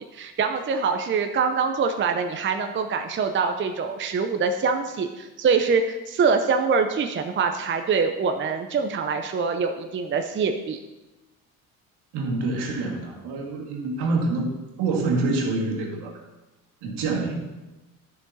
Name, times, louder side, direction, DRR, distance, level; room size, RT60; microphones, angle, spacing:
voice 1, 0.0-10.8, right 5 dB, 30° right, 6 dB, 0.7 m, -24 dB
voice 2, 12.1-16.2 16.8-17.4, right 3 dB, 65° right, 0 dB, 1.9 m, -26 dB
11.5 x 6.9 x 2.8 m, 1.1 s
hypercardioid pair, 60°, 43 cm